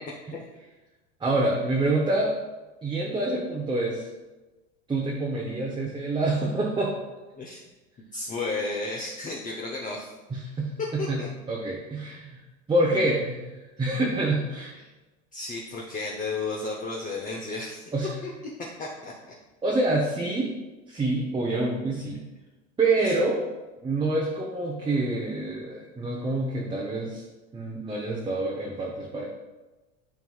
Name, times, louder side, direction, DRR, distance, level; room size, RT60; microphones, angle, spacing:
voice 1, 1.2-2.3 2.8-4.0 4.9-6.9 10.3-10.8 11.1-12.4 12.7-14.8 17.9-18.1 19.6-20.6 20.9-22.3 22.8-23.4 23.8-27.2 27.5-29.3, right 2 dB, 15° right, -2 dB, 0.8 m, -27 dB
voice 2, 8.1-10.1 11.0-11.3 15.3-17.9 18.8-19.3 23.0-23.1, left 3 dB, 20° left, -1 dB, 0.8 m, -33 dB
9.4 x 4.6 x 2.3 m, 1.1 s
hypercardioid pair, 105°, 37 cm